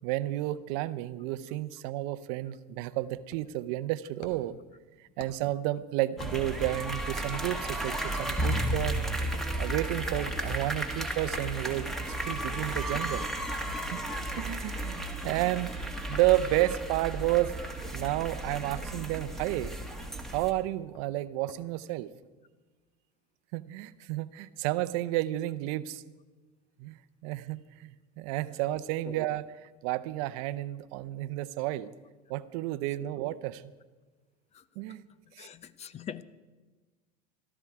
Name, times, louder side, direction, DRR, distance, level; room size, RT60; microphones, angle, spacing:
voice 1, 0.0-4.6 5.2-9.0 9.5-11.9 12.2-13.2 13.9-14.1 14.4-17.5 17.9-19.7 20.3-22.1 23.5-26.0 26.8-29.4 29.8-31.9 32.3-33.6 34.8-35.0 35.3-35.5, right 15 dB, 65° right, 15 dB, 0.7 m, -31 dB
sound 1, 3.3-3.6 4.2-4.6 5.2-5.6 6.2-6.7 7.3-7.7 8.4-8.8 9.2-9.6 10.3-10.5 11.3-11.7 12.3-12.7 13.3-14.6 15.2-15.4 16.1-16.4 17.0-18.1 18.8-19.0 19.4-19.5 19.7-20.1 20.9-21.6 22.0-22.3, left 5 dB, 90° left, 1.4 m, -49 dB
sound 2, 6.2-20.5, right 1 dB, ahead, 1.9 m, -34 dB
voice 2, 35.4-36.2, left 8 dB, 30° left, 17 dB, 0.6 m, -42 dB
17.5 x 12.5 x 4.8 m, 1.3 s
hypercardioid pair, 100°, 21 cm